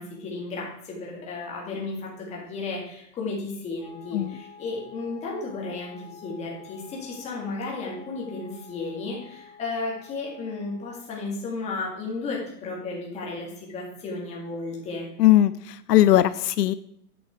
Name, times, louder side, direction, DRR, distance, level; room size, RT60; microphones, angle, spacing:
voice 1, 0.0-15.1, left 3 dB, 15° left, -2 dB, 1.9 m, -34 dB
Wind instrument woodwind instrument, 3.8-11.2, left 6 dB, 35° left, 1.1 m, -49 dB
voice 2, 15.2-16.7, left 13 dB, 80° left, 14 dB, 0.6 m, -19 dB
8.8 x 6.2 x 4.6 m, 0.70 s
hypercardioid pair, 165°, 47 cm